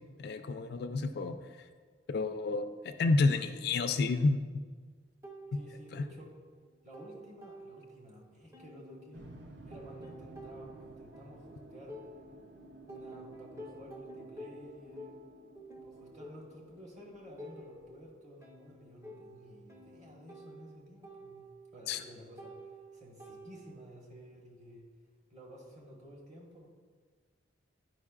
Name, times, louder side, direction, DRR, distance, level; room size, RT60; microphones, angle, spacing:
voice 1, 0.2-1.4 2.1-4.4 5.9-6.0 21.9-22.0, left 3 dB, 55° left, 8 dB, 0.3 m, -30 dB
sound 1, 5.2-6.3 6.6-8.2 8.5-12.5 12.9-23.9, right 1 dB, 15° right, 0.6 m, -51 dB
voice 2, 5.5-6.3 6.8-9.3 9.7-12.0 12.9-15.1 15.8-21.5 21.7-22.6 22.9-24.9 25.3-26.7, equal, 35° right, -2 dB, 1.3 m, -52 dB
sound 2, 9.1-18.1, right 2 dB, 60° right, 0.6 m, -54 dB
9.4 x 5.2 x 2.4 m, 1.5 s
head